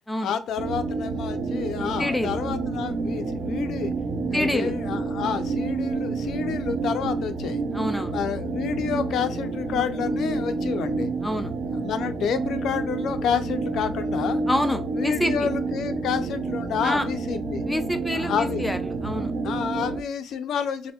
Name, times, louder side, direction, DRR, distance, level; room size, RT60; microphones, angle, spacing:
voice 1, 0.2-3.9 4.3-7.6 8.1-11.1 11.7-14.4 14.9-17.6 18.1-18.7 19.4-20.9, left 7 dB, 75° left, 0.4 m, -29 dB
sound 1, 0.6-20.0, right 3 dB, 60° right, 0.6 m, -29 dB
voice 2, 2.0-2.4 4.3-4.7 7.7-8.2 11.2-11.5 14.5-15.5 16.8-17.0 17.7-18.8 19.0-19.3, left 1 dB, 5° left, 0.4 m, -26 dB
4.2 x 2.1 x 2.2 m
cardioid pair, 90°, 0 cm